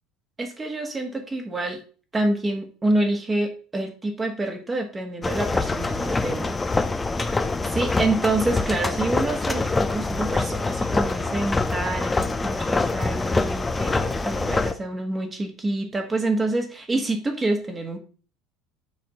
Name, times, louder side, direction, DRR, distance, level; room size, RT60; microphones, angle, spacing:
voice 1, 0.4-1.8 2.1-6.6 7.2-7.3 7.7-18.0, right 2 dB, 20° right, 3 dB, 1.7 m, -27 dB
sound 1, 5.2-14.7, left 3 dB, 15° left, 0.7 m, -25 dB
7.2 x 4.2 x 5.4 m, 0.39 s
figure-of-eight pair, 65°, 0 cm